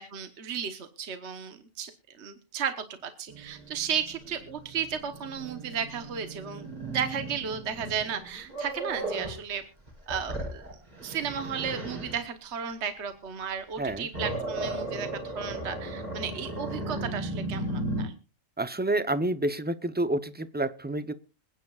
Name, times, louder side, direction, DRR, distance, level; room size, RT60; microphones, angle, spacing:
voice 1, 0.0-1.9 2.2-2.7 3.0-9.6 10.1-10.6 11.0-18.1, right 7 dB, 60° right, 8 dB, 1.4 m, -34 dB
Growling, 3.3-9.4 9.9-12.2 13.6-18.1, right 2 dB, 35° right, 4.5 m, -36 dB
voice 2, 18.6-21.1, right 1 dB, 10° right, 13 dB, 0.5 m, -29 dB
26.5 x 9.6 x 2.4 m, 0.31 s
omnidirectional pair, 1.4 m